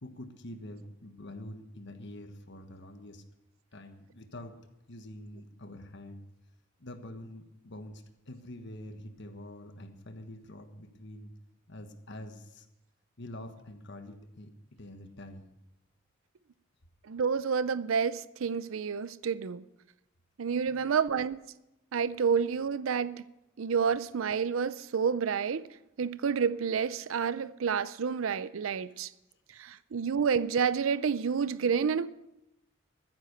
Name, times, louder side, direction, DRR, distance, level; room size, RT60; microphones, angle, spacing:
voice 1, 0.0-3.2 3.7-4.6 4.9-6.2 6.8-11.3 11.7-12.7 13.2-15.4 20.7-21.0, left 1 dB, 60° left, 1.4 m, -46 dB
voice 2, 17.1-19.6 20.4-21.4 21.9-23.2 23.6-25.6 26.0-29.1 29.6-32.1, right 6 dB, 85° right, 0.5 m, -29 dB
14.0 x 10.0 x 6.6 m
head